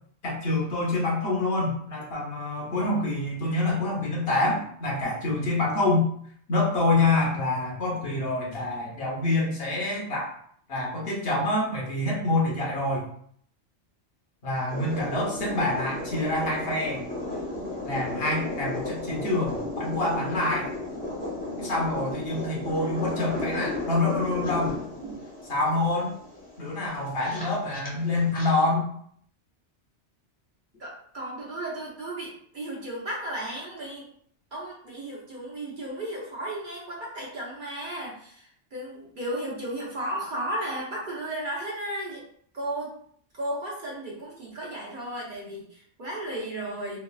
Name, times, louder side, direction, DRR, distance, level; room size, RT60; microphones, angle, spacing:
voice 1, 0.2-6.1 6.5-10.3 10.7-13.1 14.4-17.1 17.8-20.7 21.6-24.7 25.5-26.1 26.6-28.9, left 2 dB, 60° left, -3 dB, 1.0 m, -26 dB
sound 1, 14.7-28.5, left 2 dB, 10° left, 0.9 m, -34 dB
voice 2, 30.8-34.1 34.5-42.2 42.5-43.0 43.3-47.0, right 1 dB, 50° right, -4 dB, 0.9 m, -34 dB
3.0 x 2.4 x 2.2 m, 0.62 s
omnidirectional pair, 1.2 m